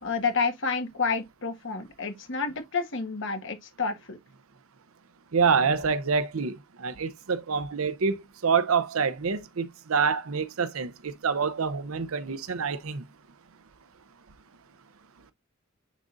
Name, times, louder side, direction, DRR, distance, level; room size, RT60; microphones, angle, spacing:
voice 1, 0.0-4.2, left 4 dB, 65° left, 1.6 m, -29 dB
voice 2, 5.3-13.0, right 5 dB, 90° right, 0.7 m, -27 dB
9.7 x 3.8 x 2.5 m
head